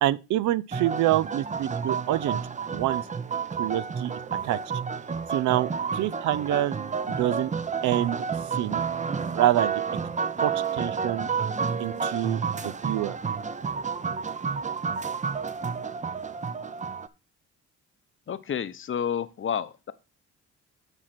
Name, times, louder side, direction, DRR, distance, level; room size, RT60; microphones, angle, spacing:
voice 1, 0.0-2.4 2.7-3.0 3.6-4.1 4.4-4.6 5.3-6.8 7.1-7.5 7.8-8.2 8.6-8.8 9.3-9.7 10.4-11.3 11.8-13.2, right 14 dB, 75° right, 0.5 m, -26 dB
sound 1, 0.7-17.1, right 6 dB, 25° right, 0.6 m, -30 dB
voice 2, 18.3-19.9, left 8 dB, 40° left, 0.8 m, -30 dB
9.0 x 4.4 x 5.9 m
cardioid pair, 90°, 30 cm